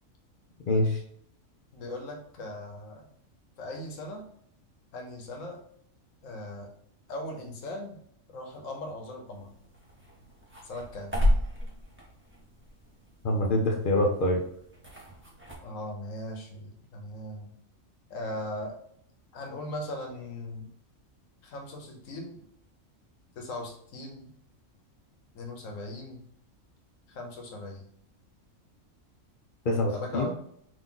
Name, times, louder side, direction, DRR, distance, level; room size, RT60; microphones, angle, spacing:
voice 1, 0.7-1.0 13.2-14.4 29.6-30.3, left 1 dB, 55° left, 1 dB, 0.6 m, -25 dB
voice 2, 1.7-3.1 3.6-4.2 4.9-5.6 6.2-6.7 7.1-8.0 8.3-9.5 10.6-11.2 15.6-17.5 18.1-18.7 19.3-20.7 21.4-22.4 23.3-24.3 25.3-26.2 27.1-27.9 29.9-30.3, left 1 dB, 75° left, 2 dB, 1.2 m, -39 dB
sound 1, 9.3-15.6, left 1 dB, 10° right, 0.8 m, -33 dB
3.9 x 2.6 x 3.7 m, 0.67 s
omnidirectional pair, 1.4 m